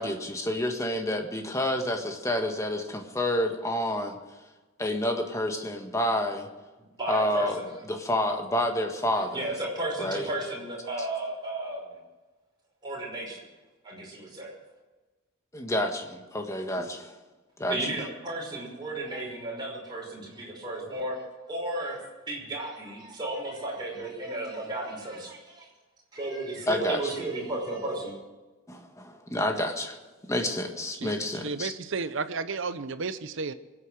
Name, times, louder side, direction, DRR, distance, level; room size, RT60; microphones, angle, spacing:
voice 1, 0.0-4.2 4.8-6.5 7.1-9.4 10.0-10.3 15.5-17.1 17.6-17.9 26.7-27.1 28.7-30.0 30.3-31.7, left 1 dB, 15° left, 1.6 m, -29 dB
voice 2, 7.0-7.7 9.3-11.8 12.8-13.4 13.8-14.5 17.7-21.2 21.5-25.7 26.1-28.2, right 2 dB, 20° right, 5.6 m, -34 dB
voice 3, 30.9-33.5, right 4 dB, 65° right, 0.8 m, -33 dB
24.0 x 8.6 x 6.3 m
head